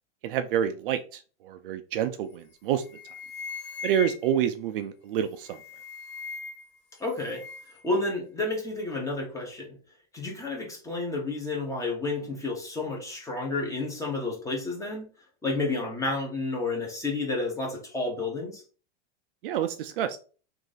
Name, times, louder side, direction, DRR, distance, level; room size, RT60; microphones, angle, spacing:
voice 1, 0.2-2.8 3.8-5.6 19.4-20.2, right 10 dB, 55° right, 9 dB, 0.4 m, -28 dB
sound 1, 2.3-2.5 2.8-4.5 5.3-6.8 7.0-7.8, left 6 dB, 40° left, 1.6 m, -40 dB
voice 2, 7.0-7.4 7.7-9.7 10.1-15.1 15.4-18.6, left 3 dB, 10° left, 0 dB, 0.9 m, -31 dB
3.0 x 2.6 x 3.9 m, 0.37 s
supercardioid pair, 145°, 34 cm